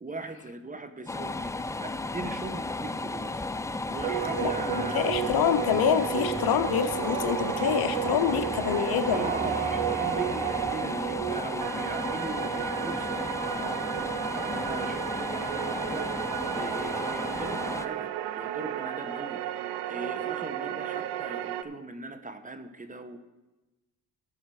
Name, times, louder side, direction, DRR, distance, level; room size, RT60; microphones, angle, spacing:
voice 1, 0.0-3.4 3.9-5.2 9.1-16.3 16.5-23.2, right 2 dB, 20° right, 9 dB, 0.9 m, -39 dB
sound 1, 1.1-17.9, left 2 dB, 10° left, 0.3 m, -34 dB
sound 2, 4.0-21.6, right 12 dB, 85° right, 0.6 m, -32 dB
voice 2, 4.4-9.3, left 10 dB, 65° left, 11 dB, 0.7 m, -27 dB
14.0 x 5.6 x 4.8 m, 1.1 s
cardioid pair, 90°, 39 cm